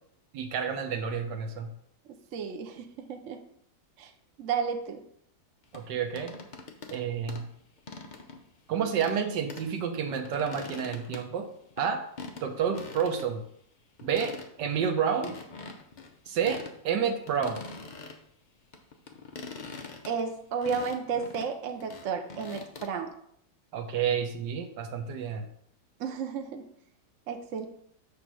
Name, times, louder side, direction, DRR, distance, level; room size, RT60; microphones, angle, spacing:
voice 1, 0.3-1.7 5.7-6.3 6.9-7.5 8.7-11.5 11.8-12.1 12.4-13.4 14.0-15.3 16.3-17.6 23.7-25.5, right 7 dB, 75° right, 6 dB, 1.4 m, -30 dB
voice 2, 2.3-3.4 4.0-4.1 4.4-5.0 20.0-23.1 26.0-26.6 27.3-27.7, right 6 dB, 55° right, 5 dB, 0.9 m, -32 dB
sound 1, 5.7-7.0 7.3-8.5 9.0-9.2 9.5-9.7 10.0-11.9 12.2-12.5 12.7-13.3 13.6-13.7 14.0-14.7 15.2-16.8 17.0-18.3 18.7-22.9, left 4 dB, 85° left, 0.4 m, -43 dB
7.2 x 3.4 x 6.0 m, 0.69 s
omnidirectional pair, 2.0 m